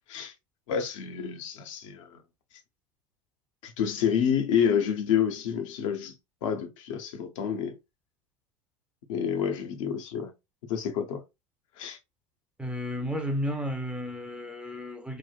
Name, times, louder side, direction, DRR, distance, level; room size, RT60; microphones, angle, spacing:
voice 1, 0.7-2.2 3.6-6.1 6.4-7.7 9.1-10.3 10.7-11.2 11.8-12.0, left 8 dB, 70° left, 0.7 m, -28 dB
voice 2, 12.6-15.2, equal, 5° right, 0.5 m, -32 dB
3.3 x 2.1 x 2.3 m
hypercardioid pair, 90°, 17 cm